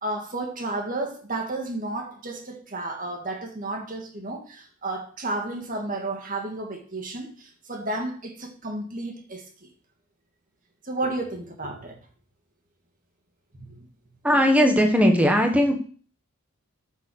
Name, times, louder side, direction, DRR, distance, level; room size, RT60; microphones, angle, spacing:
voice 1, 0.0-9.7 10.8-12.0 13.6-13.9, right 2 dB, 40° right, 3 dB, 2.1 m, -32 dB
voice 2, 14.2-15.8, equal, 5° right, 3 dB, 1.4 m, -18 dB
8.7 x 7.2 x 6.3 m, 0.43 s
head